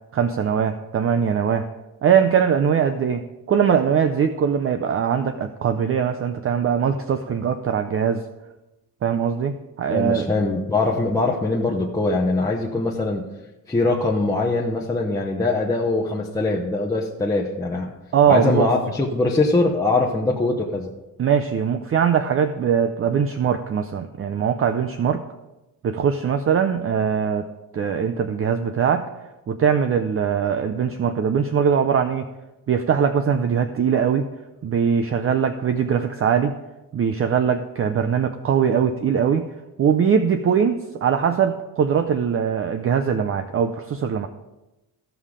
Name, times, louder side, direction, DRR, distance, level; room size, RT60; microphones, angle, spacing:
voice 1, 0.1-1.7 2.0-8.2 9.0-10.3 18.1-18.7 21.2-25.2 25.8-27.5 27.7-29.1 29.5-32.3 32.7-34.3 34.6-36.6 36.9-39.5 39.8-44.3, right 7 dB, 40° right, 8 dB, 0.5 m, -21 dB
voice 2, 9.9-13.2 13.7-17.9 18.3-20.9, left 2 dB, 10° left, -3 dB, 0.9 m, -22 dB
15.0 x 5.6 x 4.9 m, 1.0 s
cardioid pair, 135°, 36 cm